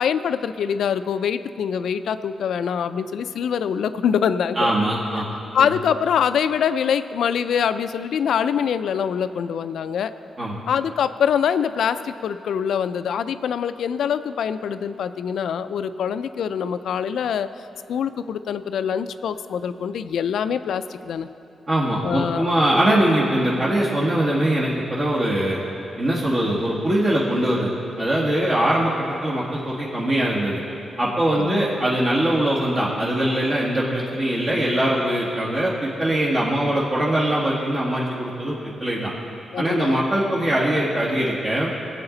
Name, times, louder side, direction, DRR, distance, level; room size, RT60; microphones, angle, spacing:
voice 1, 0.0-4.7 5.5-10.1 10.7-17.5 17.9-21.3 22.0-22.5 31.4-31.7 39.5-40.0, left 8 dB, 80° left, 12 dB, 0.4 m, -24 dB
voice 2, 4.6-5.7 10.4-10.6 21.7-25.6 26.0-30.6 31.0-39.1 39.6-41.7, right 1 dB, 45° right, -7 dB, 1.9 m, -22 dB
18.5 x 7.9 x 3.9 m, 2.8 s
cardioid pair, 100°, 0 cm